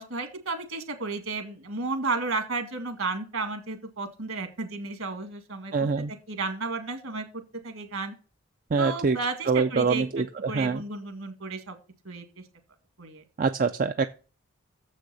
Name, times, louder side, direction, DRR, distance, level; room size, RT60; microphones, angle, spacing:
voice 1, 0.0-8.1 8.8-11.8 12.1-12.2 13.0-13.2, right 3 dB, 65° right, 7 dB, 2.0 m, -33 dB
voice 2, 5.7-6.1 8.7-9.2 9.5-10.8 13.4-14.0, right 4 dB, 40° right, 9 dB, 0.4 m, -25 dB
7.4 x 6.3 x 6.9 m, 0.37 s
head